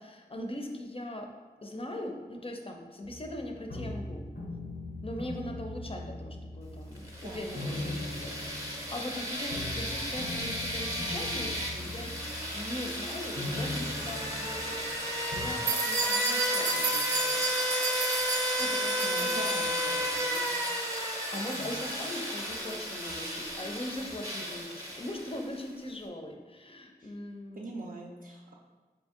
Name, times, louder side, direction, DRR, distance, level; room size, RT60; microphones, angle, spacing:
voice 1, 0.0-1.3 1.6-4.2 5.0-12.1 12.5-17.5 18.6-20.8 21.3-27.7, left 1 dB, 35° left, 2 dB, 0.5 m, -41 dB
sound 1, 3.0-15.5, left 2 dB, 80° left, 0.6 m, -40 dB
sound 2, 7.0-25.6, equal, 20° right, 0.7 m, -33 dB
voice 2, 7.2-7.6 19.0-19.7 21.3-21.9 27.0-27.1 27.5-28.5, right 2 dB, 55° right, -3 dB, 0.4 m, -42 dB
sound 3, 15.7-23.4, right 3 dB, 90° right, 0.7 m, -34 dB
3.9 x 2.7 x 3.6 m, 1.4 s
wide cardioid pair, 55°, 17 cm